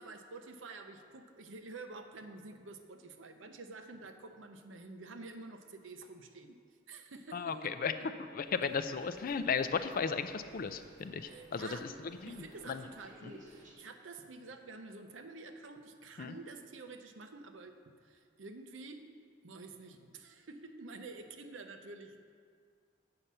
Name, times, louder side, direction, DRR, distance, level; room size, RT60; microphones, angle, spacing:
voice 1, 0.0-6.6 6.9-7.8 11.2-11.9 12.3-19.0 19.4-22.3, right 3 dB, 80° right, 6 dB, 0.8 m, -49 dB
voice 2, 7.3-7.9 8.3-11.9 12.2-12.8 13.2-13.3 16.2-16.3, left 6 dB, 50° left, 10 dB, 0.4 m, -35 dB
sound 1, 8.4-13.7, right 1 dB, 40° right, 1.5 m, -58 dB
7.8 x 7.3 x 5.5 m, 2.1 s
head